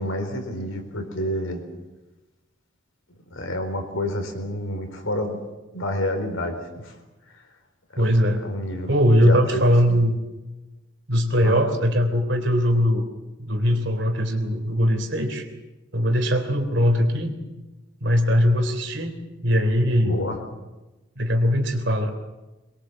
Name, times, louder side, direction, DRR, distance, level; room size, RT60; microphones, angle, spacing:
voice 1, 0.0-1.6 3.3-5.4 5.7-6.9 7.9-8.0 8.4-9.0 9.2-9.6 9.9-10.0 11.4-11.6 20.0-20.4, left 1 dB, 80° left, 5 dB, 4.3 m, -28 dB
voice 2, 8.0-8.5 8.9-10.2 11.1-13.1 13.4-15.5 15.9-17.3 18.0-19.2 19.4-20.2 21.2-22.1, equal, 60° right, 6 dB, 3.4 m, -20 dB
22.5 x 22.0 x 7.7 m, 1.1 s
head